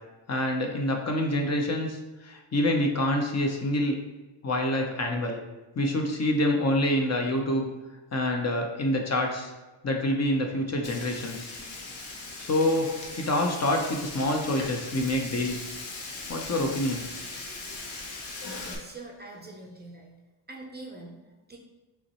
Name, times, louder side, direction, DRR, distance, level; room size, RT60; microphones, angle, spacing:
voice 1, 0.3-4.0 4.4-5.4 5.8-7.7 8.1-9.5 9.8-11.5 12.4-12.9 13.2-15.6 16.3-17.0, left 1 dB, 35° left, 2 dB, 0.7 m, -26 dB
Frying (food), 10.8-18.7, left 3 dB, 55° left, 1.1 m, -39 dB
voice 2, 18.6-20.2 20.5-21.6, right 2 dB, 20° right, 1 dB, 0.5 m, -44 dB
5.8 x 3.0 x 2.9 m, 1.2 s
cardioid pair, 100°, 47 cm